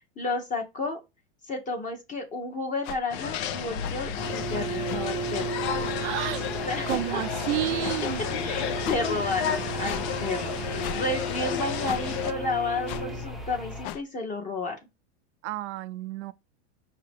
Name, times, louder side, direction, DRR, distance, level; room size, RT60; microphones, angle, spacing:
voice 1, 0.2-1.0 1.4-5.5 6.7-7.2 8.4-14.8, left 3 dB, 20° left, 0.9 m, -32 dB
sound 1, 2.8-3.0 3.8-4.0 4.9-5.0 5.8-6.0 6.9-7.0 7.8-8.0 8.8-9.0 9.8-10.0 10.8-11.0 11.8-12.0 12.9-13.1 13.8-14.0, left 10 dB, 40° left, 0.4 m, -36 dB
sound 2, 3.1-12.3, left 8 dB, 60° left, 0.9 m, -32 dB
sound 3, 4.2-13.9, right 3 dB, ahead, 0.6 m, -35 dB
voice 2, 6.0-6.4 6.9-8.2 15.4-16.3, right 16 dB, 75° right, 0.5 m, -30 dB
5.4 x 2.8 x 3.4 m
supercardioid pair, 130°, 36 cm